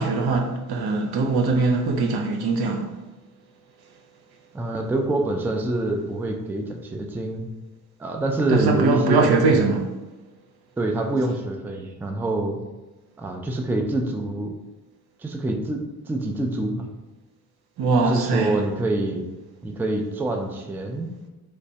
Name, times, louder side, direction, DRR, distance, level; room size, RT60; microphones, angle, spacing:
voice 1, 0.0-2.9 8.5-9.9 17.8-18.6, right 3 dB, 75° right, 0.6 m, -21 dB
voice 2, 4.5-7.5 8.0-9.7 10.8-12.6 13.2-14.5 15.2-16.9 18.0-19.3 19.6-21.1, right 2 dB, 5° right, 0.3 m, -26 dB
3.2 x 3.1 x 2.7 m
cardioid pair, 75°, 39 cm